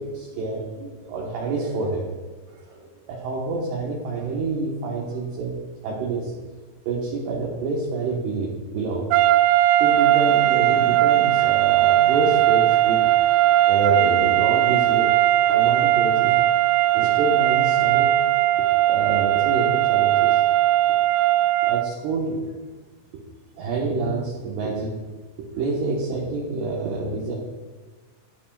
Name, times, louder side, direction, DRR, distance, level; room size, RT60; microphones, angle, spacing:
voice 1, 0.0-2.1 2.5-6.3 6.9-9.1 9.8-13.0 13.7-15.1 15.5-16.4 16.9-18.1 18.6-20.4 21.6-22.5 23.1-23.2 23.6-24.9 25.4-27.3, right 3 dB, 65° right, -3 dB, 3.1 m, -28 dB
sound 1, 9.1-22.0, right 14 dB, 90° right, 3.3 m, -19 dB
22.5 x 8.3 x 2.5 m, 1.3 s
omnidirectional pair, 5.9 m